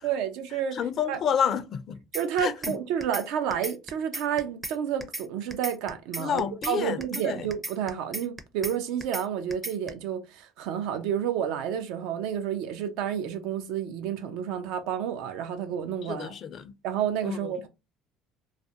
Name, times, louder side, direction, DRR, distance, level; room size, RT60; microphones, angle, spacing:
voice 1, 0.0-0.8 1.1-1.2 2.1-16.3 16.8-17.7, right 9 dB, 80° right, 0.4 m, -30 dB
voice 2, 0.7-2.0 2.4-2.8 6.2-7.5 16.0-16.7 17.2-17.5, left 8 dB, 50° left, 0.4 m, -29 dB
sound 1, 2.1-2.7 3.0-3.2 3.5-4.7 5.0-5.2 5.5-6.7 7.0-7.2 7.5-8.7 9.0-9.2 9.5-9.9, right 2 dB, 15° right, 0.5 m, -35 dB
2.3 x 2.1 x 2.7 m
supercardioid pair, 100°, 0 cm